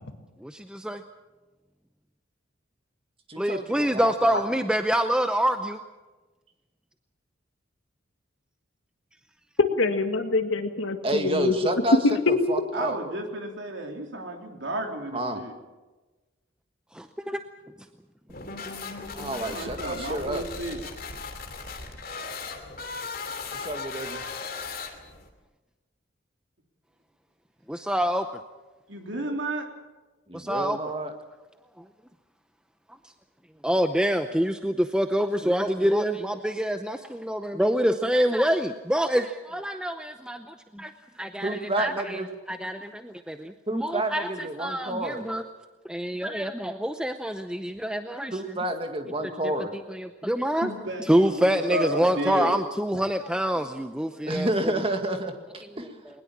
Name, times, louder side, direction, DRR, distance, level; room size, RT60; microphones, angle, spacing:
voice 1, 0.4-1.0 3.4-5.8 16.9-17.4 27.7-28.3 30.3-30.8 31.8-31.9 33.6-40.9 41.2-42.2 42.5-45.4 45.9-48.6 49.2-50.7 51.0-54.5, equal, 5° right, 7 dB, 0.6 m, -26 dB
voice 2, 3.3-4.4 11.0-12.0 12.3-13.0 15.1-15.4 18.3-18.4 19.1-20.5 23.5-24.2 30.3-31.1 41.4-42.3 43.7-45.2 48.3-49.7 54.2-55.9, right 1 dB, 30° right, 5 dB, 2.0 m, -30 dB
voice 3, 9.6-11.7 12.3-12.4, left 4 dB, 75° left, 7 dB, 2.0 m, -25 dB
voice 4, 12.7-15.5 19.5-20.8 28.9-29.7 50.6-52.5, right 1 dB, 65° right, 3 dB, 3.4 m, -32 dB
sound 1, 18.3-25.3, left 4 dB, 45° left, 2.8 m, -37 dB
21.0 x 20.5 x 7.4 m, 1.2 s
head